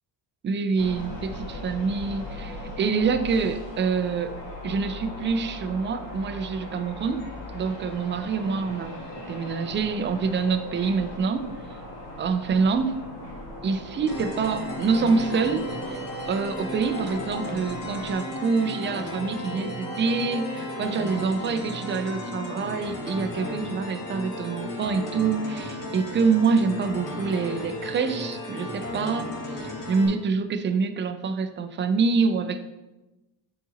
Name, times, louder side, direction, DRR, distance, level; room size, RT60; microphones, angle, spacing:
voice 1, 0.4-4.3 4.6-7.3 7.5-11.5 12.2-13.0 13.6-16.0 16.3-32.6, right 5 dB, 30° right, 9 dB, 0.4 m, -26 dB
sound 1, 0.8-18.1, left 1 dB, 85° left, 1.9 m, -39 dB
sound 2, 14.1-30.1, left 1 dB, 50° left, 2.0 m, -34 dB
7.7 x 4.0 x 3.8 m, 1.1 s
cardioid pair, 145°, 42 cm